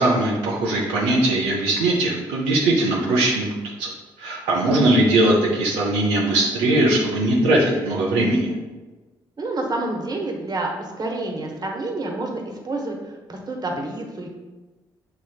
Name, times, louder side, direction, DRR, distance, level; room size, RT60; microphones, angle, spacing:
voice 1, 0.0-3.5 3.8-3.9 4.2-8.5, right 1 dB, 85° right, -3 dB, 0.6 m, -20 dB
voice 2, 9.4-14.3, right 2 dB, 40° right, 1 dB, 1.1 m, -28 dB
6.6 x 3.0 x 2.3 m, 1.2 s
supercardioid pair, 50°, 10 cm